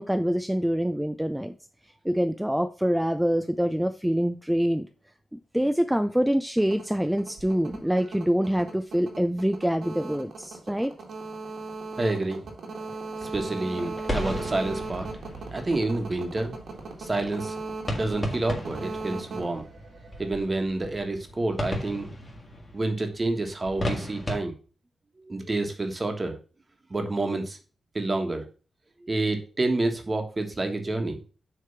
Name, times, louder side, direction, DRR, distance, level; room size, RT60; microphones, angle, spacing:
voice 1, 0.0-1.5 2.0-4.9 5.3-10.9, equal, 5° right, 8 dB, 0.4 m, -25 dB
sound 1, 6.6-20.4, right 3 dB, 75° right, 1.8 m, -38 dB
voice 2, 12.0-12.4 13.2-15.1 15.5-16.6 17.0-17.6 17.9-19.7 20.2-22.1 22.7-24.5 25.2-26.3 26.9-27.6 27.9-28.4 29.0-31.3, right 2 dB, 30° right, 5 dB, 1.4 m, -28 dB
sound 2, 13.8-24.4, left 1 dB, 25° left, 2.1 m, -36 dB
6.5 x 3.4 x 5.8 m, 0.37 s
cardioid pair, 80°, 0 cm